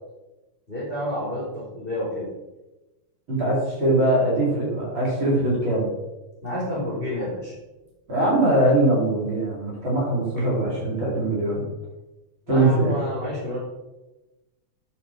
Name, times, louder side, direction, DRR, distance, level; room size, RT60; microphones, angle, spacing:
voice 1, 0.7-2.3 6.4-7.5 12.5-13.6, left 1 dB, 15° left, -5 dB, 4.5 m, -29 dB
voice 2, 3.3-5.9 8.1-11.7 12.5-13.0, right 1 dB, 40° right, -5 dB, 5.1 m, -22 dB
13.0 x 9.9 x 4.8 m, 1.1 s
omnidirectional pair, 3.3 m